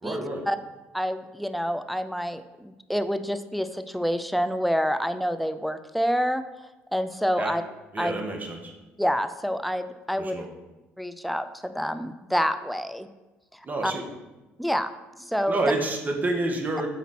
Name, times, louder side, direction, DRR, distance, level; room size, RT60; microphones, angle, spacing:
voice 1, 0.0-0.4 7.4-7.5 7.9-8.7 10.2-10.5 13.6-14.0 15.5-16.9, right 2 dB, 30° right, 2 dB, 1.8 m, -28 dB
voice 2, 0.9-6.4 6.9-7.6 8.0-8.2 9.0-10.4 11.0-13.1 13.8-13.9 14.6-14.9 15.2-15.6, equal, ahead, 10 dB, 0.6 m, -27 dB
8.5 x 4.1 x 6.1 m, 1.1 s
hypercardioid pair, 65°, 5 cm